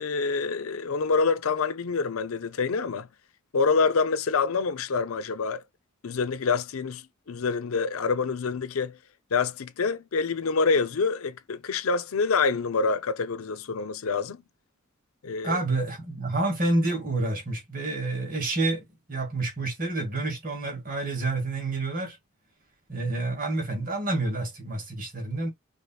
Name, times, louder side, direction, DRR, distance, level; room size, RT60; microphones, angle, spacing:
voice 1, 0.0-3.1 3.5-5.6 6.0-7.0 7.3-9.0 9.3-14.4 15.2-15.6, left 4 dB, 85° left, 0.6 m, -26 dB
voice 2, 15.4-22.2 22.9-25.5, right 2 dB, 40° right, 2.0 m, -28 dB
5.1 x 2.8 x 2.3 m
head